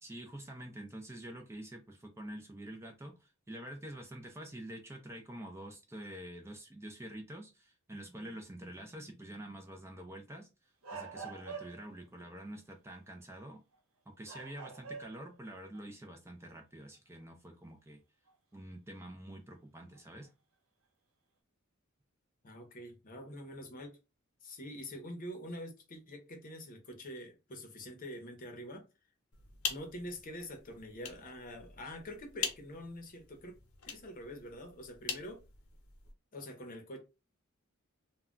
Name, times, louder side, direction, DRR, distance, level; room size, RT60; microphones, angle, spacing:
voice 1, 0.0-10.5 10.9-13.6 14.2-18.0 18.5-20.3, right 1 dB, 15° right, 0.4 m, -47 dB
sound 1, 10.8-12.0 13.5-13.7 14.3-15.3 15.7-15.8 18.3-18.4 20.0-20.3, right 5 dB, 85° right, 0.8 m, -45 dB
voice 2, 22.4-24.0 24.4-28.8 29.7-33.5 33.9-35.4 36.3-37.0, equal, 40° left, 0.7 m, -45 dB
sound 2, 29.3-36.1, left 7 dB, 90° left, 0.8 m, -43 dB
2.2 x 2.2 x 3.6 m
head